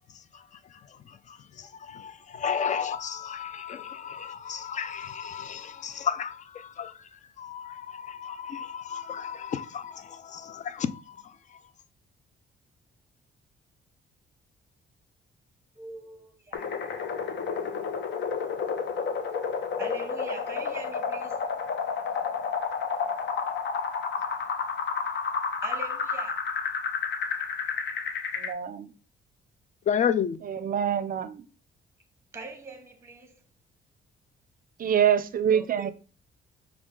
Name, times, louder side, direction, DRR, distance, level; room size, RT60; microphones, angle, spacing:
voice 1, 0.1-11.6 29.9-30.4, left 7 dB, 40° left, 0.4 m, -33 dB
voice 2, 15.8-16.7 19.8-21.4 25.6-26.4 32.3-33.4 35.5-35.9, right 2 dB, 15° right, 0.8 m, -42 dB
sound 1, 16.5-28.5, left 5 dB, 65° left, 0.8 m, -31 dB
voice 3, 28.4-28.9 30.5-31.4 34.8-35.9, right 8 dB, 45° right, 0.5 m, -25 dB
6.0 x 2.4 x 3.7 m
cardioid pair, 90°, 20 cm